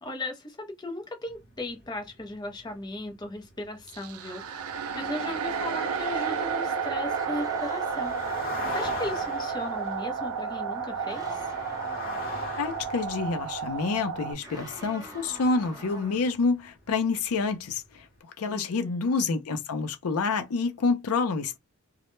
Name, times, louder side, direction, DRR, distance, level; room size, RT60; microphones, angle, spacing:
voice 1, 0.0-11.5 18.4-19.1, left 1 dB, 20° left, 0.5 m, -37 dB
sound 1, 1.3-16.6 16.8-17.2 17.6-17.8, left 3 dB, 40° left, 0.9 m, -42 dB
sound 2, 3.9-14.3, right 6 dB, 80° right, 0.4 m, -32 dB
sound 3, 6.8-9.6 11.0-12.5 14.4-16.4, right 1 dB, 15° right, 0.7 m, -44 dB
voice 2, 12.6-18.1 18.4-21.6, left 4 dB, 80° left, 0.5 m, -28 dB
2.1 x 2.0 x 3.0 m
head